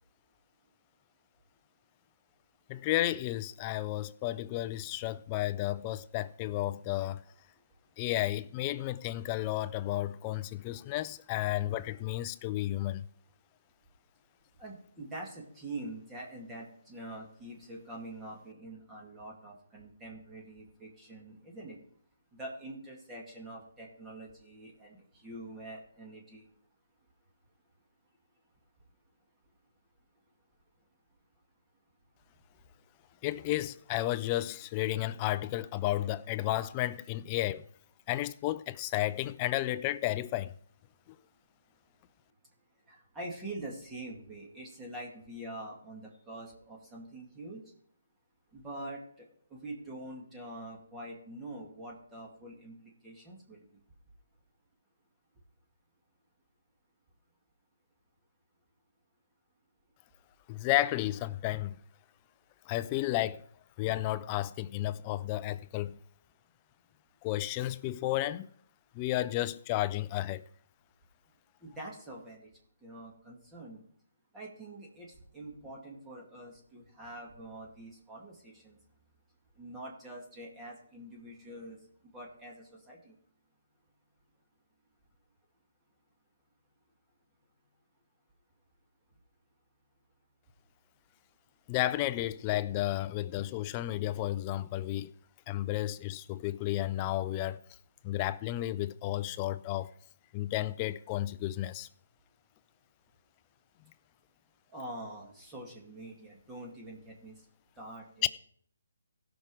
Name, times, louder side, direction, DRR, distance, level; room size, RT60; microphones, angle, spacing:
voice 1, 2.7-7.2 8.0-13.1 33.2-37.6 38.1-40.5 60.5-61.8 62.7-63.4 63.8-66.0 67.2-68.5 68.9-70.4 91.7-95.1 95.5-97.6 98.0-99.9 100.3-101.9 108.2-108.3, left 15 dB, 20° left, 0.4 m, -32 dB
voice 2, 14.6-21.8 22.3-26.5 37.2-37.3 42.9-47.6 48.5-53.6 71.6-72.5 72.8-73.8 74.3-78.8 79.6-81.8 82.1-83.1 104.7-107.4 107.8-108.3, right 1 dB, 10° right, 2.1 m, -45 dB
16.5 x 5.8 x 4.8 m
hypercardioid pair, 160°, 0 cm